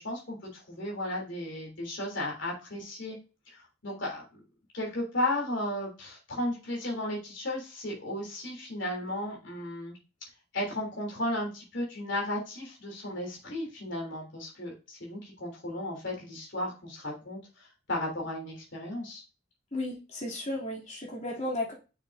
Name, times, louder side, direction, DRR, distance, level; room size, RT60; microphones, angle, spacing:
voice 1, 0.0-3.2 3.5-4.2 4.7-10.0 10.5-19.2, left 1 dB, 65° left, -1 dB, 3.2 m, -34 dB
voice 2, 19.7-21.7, left 1 dB, 35° left, -3 dB, 2.9 m, -34 dB
6.6 x 6.5 x 2.6 m, 0.31 s
head